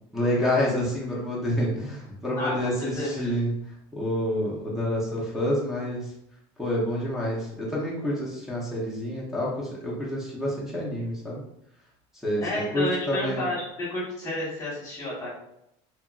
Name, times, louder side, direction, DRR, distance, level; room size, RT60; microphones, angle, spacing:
voice 1, 0.1-3.5 3.9-6.1 6.6-11.4 12.2-13.4, left 1 dB, ahead, -5 dB, 0.7 m, -28 dB
voice 2, 2.4-3.3 12.4-15.3, left 1 dB, 25° left, -6 dB, 1.2 m, -31 dB
2.9 x 2.4 x 2.4 m, 0.79 s
cardioid pair, 160°, 15 cm